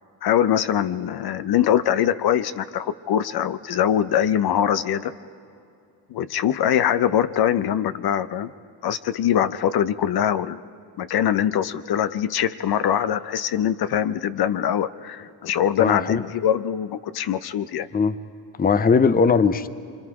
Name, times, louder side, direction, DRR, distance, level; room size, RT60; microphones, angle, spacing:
voice 1, 0.2-5.1 6.1-8.5 8.8-10.6 11.0-17.9, left 10 dB, 55° left, 12 dB, 0.8 m, -23 dB
voice 2, 15.8-16.2 17.9-18.2 18.6-19.7, left 5 dB, 20° left, 13 dB, 0.7 m, -19 dB
25.5 x 25.5 x 4.9 m, 2.5 s
supercardioid pair, 80°, 46 cm